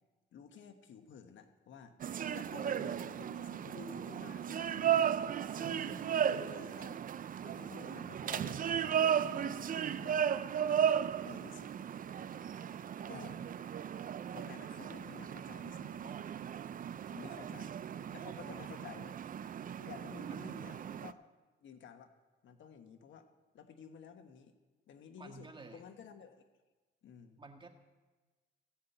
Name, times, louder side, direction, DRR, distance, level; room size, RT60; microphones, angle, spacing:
voice 1, 0.3-2.0 2.3-5.2 5.5-7.0 7.4-8.7 9.0-10.2 10.6-11.7 13.1-13.4 14.3-16.2 17.0-17.7 18.1-19.2 19.8-21.3 21.6-22.1 22.4-23.3 23.5-24.5 24.9-26.4 27.0-27.4, left 7 dB, 70° left, 7 dB, 1.3 m, -52 dB
sound 1, 2.0-21.1, right 9 dB, 45° right, 0.5 m, -35 dB
voice 2, 20.2-20.6 25.2-25.8 27.4-27.7, right 3 dB, 25° right, 4 dB, 1.6 m, -52 dB
16.0 x 5.7 x 8.1 m, 1.2 s
cardioid pair, 90°, 20 cm